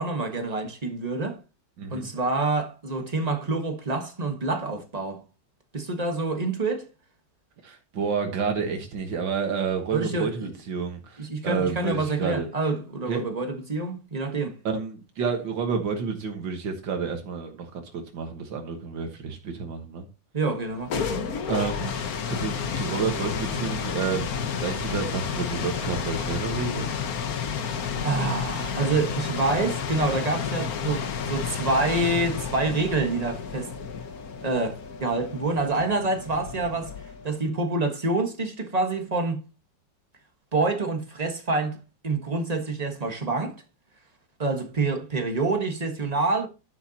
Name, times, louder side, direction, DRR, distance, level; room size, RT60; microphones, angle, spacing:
voice 1, 0.0-1.4 1.9-5.2 5.7-6.9 9.9-10.5 11.2-14.6 20.3-21.3 28.0-33.7 34.4-39.5 40.5-43.6 44.4-46.5, right 3 dB, 25° right, 1.3 m, -27 dB
voice 2, 1.8-2.1 7.6-12.5 13.1-13.2 14.6-20.1 21.5-21.9 22.3-24.3 24.6-26.9, right 5 dB, 80° right, 2.1 m, -29 dB
sound 1, 20.6-37.3, left 7 dB, 55° left, 1.4 m, -31 dB
10.5 x 10.0 x 2.8 m
omnidirectional pair, 2.0 m